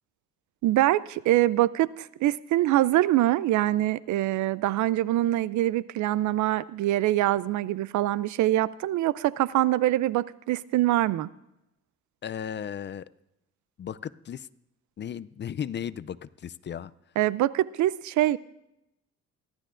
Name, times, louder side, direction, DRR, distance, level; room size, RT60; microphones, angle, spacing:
voice 1, 0.6-11.3 17.2-18.4, right 15 dB, 75° right, 19 dB, 0.5 m, -24 dB
voice 2, 12.2-13.1 13.8-14.5 15.0-16.9, left 8 dB, 35° left, 17 dB, 0.4 m, -35 dB
29.0 x 12.0 x 2.5 m, 0.87 s
cardioid pair, 90°, 30 cm